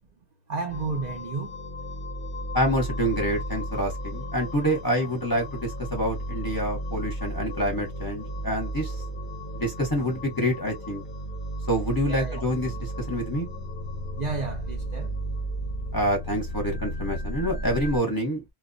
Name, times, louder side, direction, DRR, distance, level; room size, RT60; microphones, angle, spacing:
voice 1, 0.5-1.6 12.0-12.4 14.2-15.1, right 4 dB, 65° right, 0.4 m, -32 dB
sound 1, 0.7-18.0, right 1 dB, 55° left, 0.6 m, -34 dB
voice 2, 2.5-8.9 9.5-11.0 11.7-13.5 15.9-18.4, equal, 20° left, 0.7 m, -27 dB
2.2 x 2.1 x 2.5 m
omnidirectional pair, 1.4 m